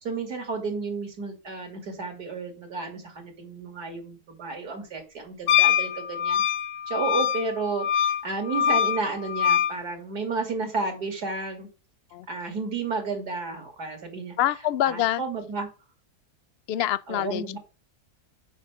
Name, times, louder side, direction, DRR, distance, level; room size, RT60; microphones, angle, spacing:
voice 1, 0.0-6.4 6.9-11.7 12.3-14.4 14.8-15.7 17.1-17.6, right 4 dB, 90° right, 3.2 m, -32 dB
Wind instrument woodwind instrument, 5.5-9.8, left 9 dB, 90° left, 1.3 m, -24 dB
voice 2, 14.4-15.2 16.7-17.6, left 12 dB, 70° left, 0.6 m, -26 dB
7.2 x 5.7 x 6.1 m
omnidirectional pair, 1.6 m